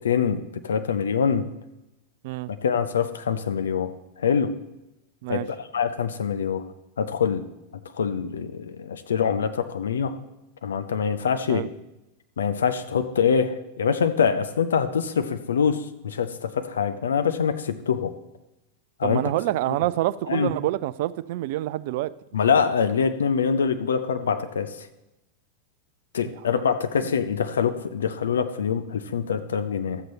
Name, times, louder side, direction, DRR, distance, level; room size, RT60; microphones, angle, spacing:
voice 1, 0.0-1.5 2.5-3.9 4.2-4.5 5.3-5.4 5.7-6.7 7.0-7.5 8.0-10.1 10.6-11.7 12.4-18.1 19.0-19.2 20.3-20.5 22.3-24.8 26.1-30.0, left 6 dB, 65° left, 9 dB, 0.7 m, -24 dB
voice 2, 19.0-22.1 26.6-26.7 27.0-27.1, right 15 dB, 50° right, 18 dB, 0.3 m, -27 dB
13.0 x 7.8 x 4.0 m, 0.95 s
figure-of-eight pair, 90°, 0 cm